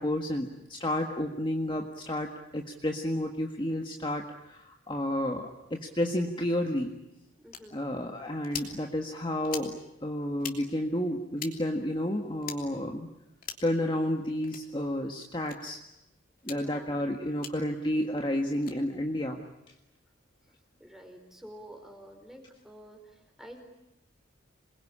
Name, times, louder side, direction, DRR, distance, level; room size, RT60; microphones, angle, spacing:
voice 1, 0.0-6.9 7.7-13.1 13.6-15.8 16.4-19.4, left 1 dB, 25° left, 2 dB, 1.6 m, -31 dB
voice 2, 7.4-7.8 16.5-17.3 20.8-23.6, equal, ahead, 4 dB, 4.4 m, -49 dB
sound 1, 7.5-7.6 8.4-8.7 9.4-9.7 10.4-10.6 11.4-11.5 12.4-12.6 13.4-13.7 14.4-14.6 15.4-15.6 16.4-16.6 17.4-17.5 18.5-18.8, left 8 dB, 45° left, 3.2 m, -39 dB
27.5 x 21.5 x 10.0 m, 0.88 s
head